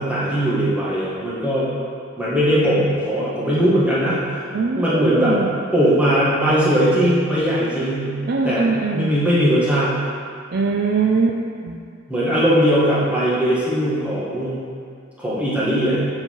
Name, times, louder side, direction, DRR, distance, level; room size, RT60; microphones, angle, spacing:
voice 1, 0.0-1.7 2.2-4.4 4.8-5.4 5.7-8.1 8.4-8.7 8.9-9.9 12.1-14.6 15.2-16.1, equal, 5° right, -9 dB, 1.7 m, -19 dB
voice 2, 4.5-5.6 8.3-9.2 10.5-11.8, right 4 dB, 50° right, 1 dB, 0.4 m, -22 dB
6.9 x 5.2 x 4.6 m, 2.3 s
head